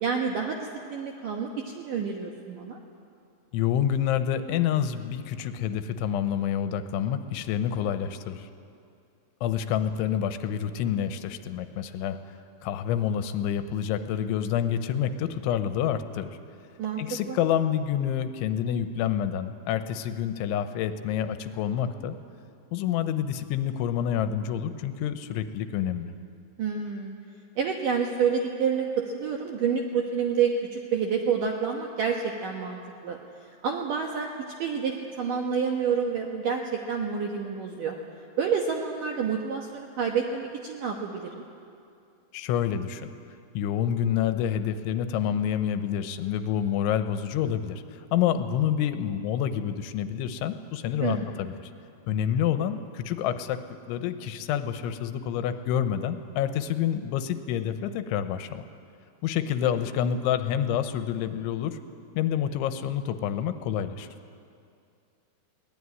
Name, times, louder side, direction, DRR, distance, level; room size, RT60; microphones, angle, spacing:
voice 1, 0.0-0.6 0.9-2.8 16.8-17.0 17.3-17.4 26.6-27.1 27.6-33.2 33.6-34.3 34.6-38.0 38.4-41.4 51.0-51.3, right 6 dB, 70° right, 1 dB, 2.0 m, -28 dB
voice 2, 3.5-8.5 9.4-12.2 12.6-16.3 17.0-22.2 22.7-26.1 42.3-43.1 43.5-51.5 52.1-53.6 53.9-58.6 59.2-61.8 62.2-64.1, left 9 dB, 80° left, 9 dB, 3.1 m, -28 dB
22.5 x 18.5 x 9.6 m, 2.4 s
omnidirectional pair, 5.6 m